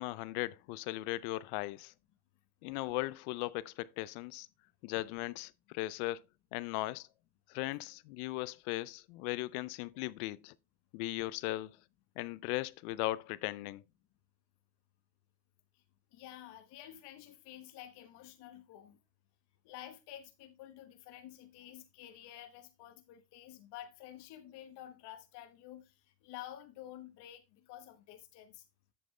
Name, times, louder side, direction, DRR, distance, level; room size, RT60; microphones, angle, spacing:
voice 1, 0.0-1.9 2.6-4.5 4.8-6.2 6.5-7.1 7.5-10.5 10.9-11.8 12.2-13.8, left 18 dB, 85° left, 0.6 m, -38 dB
voice 2, 16.1-19.0 19.6-25.9 26.2-28.6, left 12 dB, 65° left, 1.2 m, -50 dB
7.8 x 7.6 x 3.2 m
supercardioid pair, 85°, 43 cm